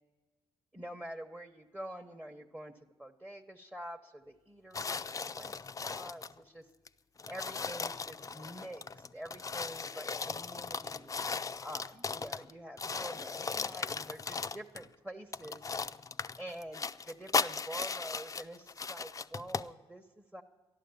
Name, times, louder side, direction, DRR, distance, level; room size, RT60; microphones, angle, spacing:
voice 1, 0.7-2.7 3.0-6.7 7.3-11.1 11.6-15.7 16.4-20.4, right 1 dB, 10° right, 2 dB, 1.0 m, -46 dB
sound 1, 4.7-6.4 6.9-7.0 7.2-12.5 12.8-14.9 15.3-19.7, left 5 dB, 30° left, 0.4 m, -37 dB
12.5 x 11.5 x 7.1 m, 1.3 s
supercardioid pair, 60°, 11 cm